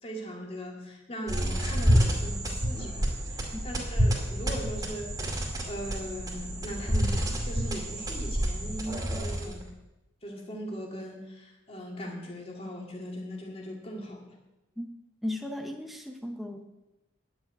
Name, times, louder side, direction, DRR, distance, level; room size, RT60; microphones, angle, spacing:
voice 1, 0.0-5.2 5.6-9.6 10.2-14.4, equal, 30° left, 0 dB, 2.4 m, -39 dB
sound 1, 1.3-9.7, equal, 20° right, 2.3 m, -28 dB
voice 2, 15.2-16.6, left 1 dB, ahead, 2 dB, 0.9 m, -35 dB
10.5 x 7.2 x 8.7 m, 0.98 s
head